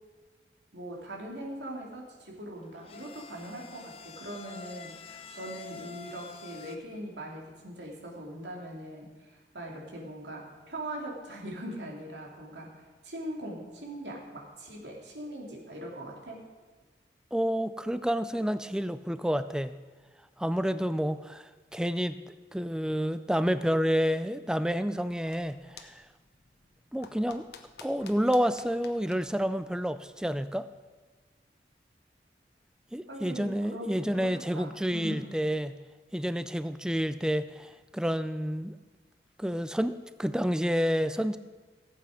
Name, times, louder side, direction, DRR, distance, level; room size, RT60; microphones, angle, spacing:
voice 1, 0.7-12.7 13.0-16.4 33.1-35.3, right 1 dB, 85° right, -1 dB, 2.7 m, -41 dB
sound 1, 2.5-6.8, left 4 dB, 35° left, 0.7 m, -47 dB
voice 2, 17.3-19.7 20.4-26.0 26.9-27.5 27.8-30.7 32.9-35.8 36.1-38.7 39.4-41.4, equal, 5° right, 12 dB, 0.4 m, -29 dB
sound 2, 25.1-30.3, left 4 dB, 70° left, 1.0 m, -53 dB
17.0 x 8.2 x 5.0 m, 1.3 s
head